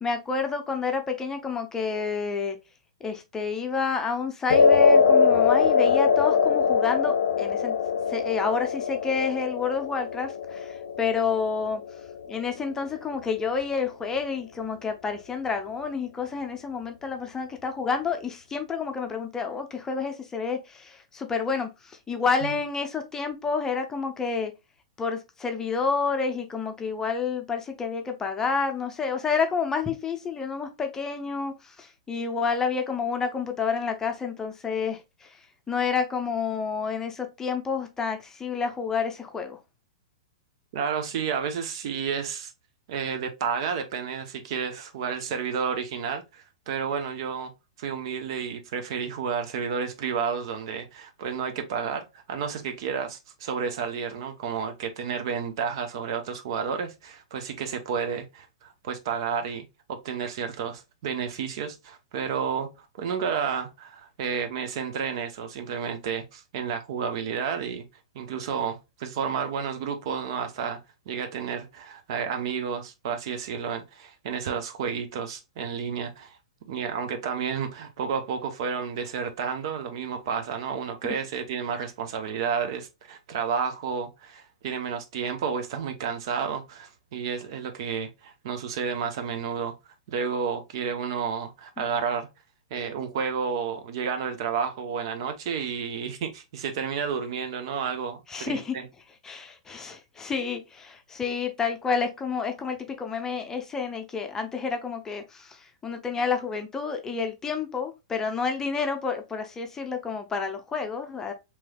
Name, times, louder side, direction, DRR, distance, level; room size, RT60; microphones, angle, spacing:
voice 1, 0.0-2.6 3.0-7.8 8.1-11.8 12.3-21.7 22.1-24.5 25.0-31.5 31.8-35.0 35.7-39.6 98.3-98.7 99.2-105.6 105.8-111.3, left 5 dB, 15° left, 0.6 m, -29 dB
sound 1, 4.5-12.8, left 6 dB, 75° left, 0.4 m, -22 dB
voice 2, 40.7-42.5 42.9-47.5 47.8-62.7 63.0-67.9 68.1-70.8 71.1-76.4 76.7-89.7 90.1-92.3 92.7-98.9, right 6 dB, 55° right, 0.7 m, -31 dB
3.1 x 3.0 x 2.2 m
hypercardioid pair, 115°, 3 cm